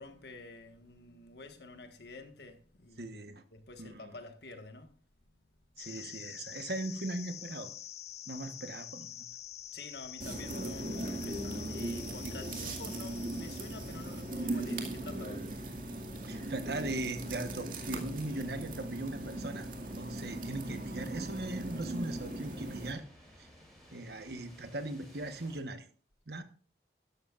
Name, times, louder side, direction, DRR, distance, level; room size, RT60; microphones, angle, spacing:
voice 1, 0.0-3.2 3.5-5.0 9.7-15.4, left 2 dB, 70° left, 1.6 m, -49 dB
voice 2, 3.0-3.4 3.8-4.1 5.8-7.7 8.3-9.3 12.2-12.3 16.2-19.7 20.0-23.0 23.4-23.5 23.9-25.9 26.3-26.4, right 2 dB, 65° right, 1.3 m, -39 dB
sound 1, 5.8-14.9, left 11 dB, 40° left, 0.5 m, -47 dB
sound 2, 10.2-22.9, right 1 dB, 50° right, 2.1 m, -39 dB
sound 3, 15.0-25.6, equal, ahead, 6.1 m, -58 dB
13.0 x 12.5 x 2.5 m
head